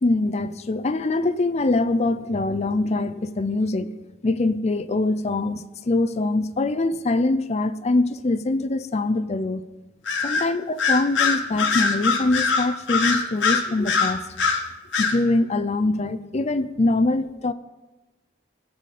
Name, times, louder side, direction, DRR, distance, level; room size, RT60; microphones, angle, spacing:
voice 1, 0.0-3.9 4.2-9.6 10.2-14.2 15.0-17.5, left 2 dB, 35° left, 0.5 m, -23 dB
Bird vocalization bird call bird song, 10.1-10.5 10.8-14.6 14.9-15.2, left 5 dB, 90° left, 1.3 m, -22 dB
17.5 x 6.6 x 4.2 m
head